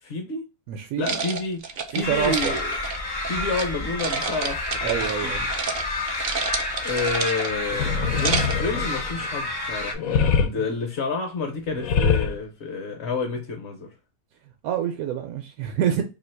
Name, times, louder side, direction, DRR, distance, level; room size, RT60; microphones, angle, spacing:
voice 1, 0.0-0.4 1.0-2.7 3.3-5.3 6.8-7.9 8.2-13.9, left 4 dB, 55° left, 0.9 m, -29 dB
voice 2, 0.7-1.2 1.9-2.5 4.8-5.4 7.9-8.6 10.6-10.7 14.6-16.0, right 9 dB, 80° right, 1.0 m, -27 dB
sound 1, 1.0-3.7 4.0-5.2 5.5-5.8 6.1-7.6 8.0-8.7, right 5 dB, 60° right, 0.5 m, -29 dB
sound 2, 2.0-9.9, left 2 dB, 30° left, 0.5 m, -29 dB
sound 3, 7.8-9.3 9.9-10.5 11.7-12.4, left 6 dB, 80° left, 1.0 m, -23 dB
2.8 x 2.7 x 4.4 m
omnidirectional pair, 1.5 m